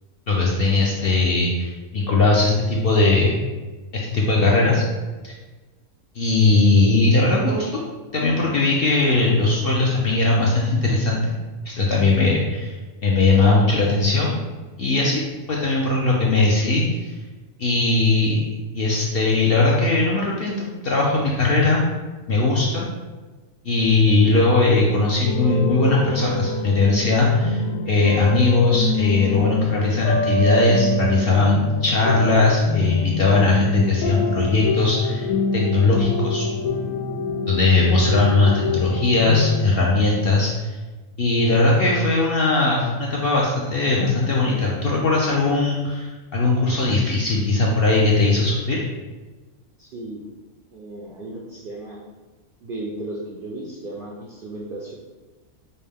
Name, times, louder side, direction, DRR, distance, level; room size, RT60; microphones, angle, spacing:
voice 1, 0.3-3.3 3.9-4.8 5.2-5.3 6.1-7.8 8.1-11.3 11.7-14.3 14.8-15.2 15.5-17.1 17.6-18.5 18.7-21.8 22.3-22.9 23.6-36.5 37.5-40.8 41.2-48.8, left 3 dB, 60° left, -3 dB, 0.6 m, -19 dB
sound 1, 25.2-39.7, left 3 dB, 90° left, 1.1 m, -26 dB
voice 2, 49.8-50.2 50.7-52.0 52.6-54.9, right 2 dB, 60° right, -3 dB, 0.5 m, -35 dB
5.3 x 2.2 x 3.4 m, 1.3 s
omnidirectional pair, 1.5 m